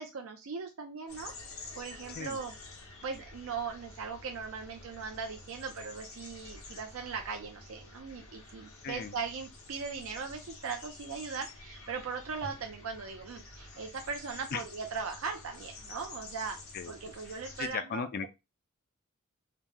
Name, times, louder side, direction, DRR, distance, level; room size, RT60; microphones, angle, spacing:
voice 1, 0.0-1.3 1.7-2.6 3.0-16.6 16.9-18.3, right 5 dB, 65° right, 0.5 m, -39 dB
sound 1, 1.1-17.7, left 3 dB, 70° left, 0.9 m, -49 dB
voice 2, 8.8-9.1 14.5-14.6 16.7-16.9 17.6-18.3, left 6 dB, 45° left, 0.3 m, -36 dB
2.9 x 2.0 x 3.5 m
head